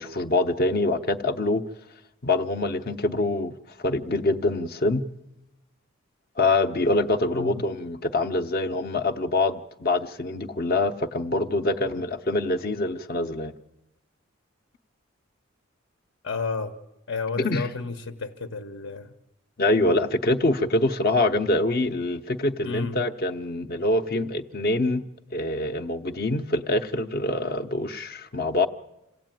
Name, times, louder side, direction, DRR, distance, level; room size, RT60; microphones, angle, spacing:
voice 1, 0.0-1.6 2.2-3.5 3.8-5.0 6.4-13.5 17.4-17.7 19.6-25.0 25.3-28.7, left 2 dB, 45° left, 9 dB, 0.8 m, -25 dB
voice 2, 16.2-16.7 17.1-19.1 22.6-23.0, left 4 dB, 70° left, 9 dB, 1.1 m, -31 dB
27.0 x 16.0 x 9.1 m, 0.98 s
head